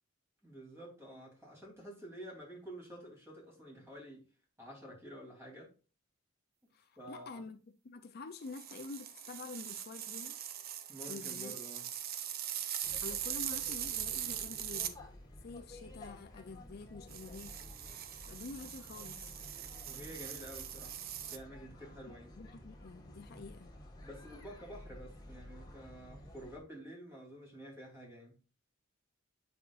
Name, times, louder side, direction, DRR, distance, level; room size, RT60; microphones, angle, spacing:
voice 1, 0.4-4.2 4.6-5.7 7.0-7.4 10.9-11.8 19.8-21.0 21.3-22.3 24.0-28.3, equal, 15° right, 3.1 m, -50 dB
voice 2, 6.7-10.4 11.1-11.6 13.0-15.0 15.4-17.6 18.3-19.4 22.1-23.7, left 3 dB, 50° left, 0.5 m, -48 dB
sound 1, 8.5-15.0 17.1-21.4, right 10 dB, 50° right, 0.6 m, -41 dB
sound 2, 12.8-26.6, left 1 dB, 20° left, 1.5 m, -53 dB
7.9 x 5.7 x 2.5 m
head